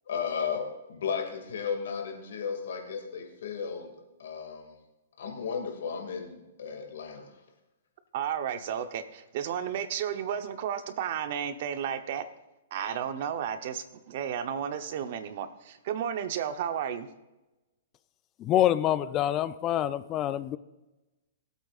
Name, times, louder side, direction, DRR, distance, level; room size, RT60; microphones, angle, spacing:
voice 1, 0.1-3.9 4.2-4.7 5.2-7.3, left 6 dB, 75° left, 2.2 m, -34 dB
voice 2, 8.1-12.2 12.7-17.1, right 8 dB, 50° right, 0.8 m, -33 dB
voice 3, 18.4-20.6, left 12 dB, 25° left, 0.4 m, -26 dB
19.5 x 8.2 x 2.4 m
hypercardioid pair, 155°, 0 cm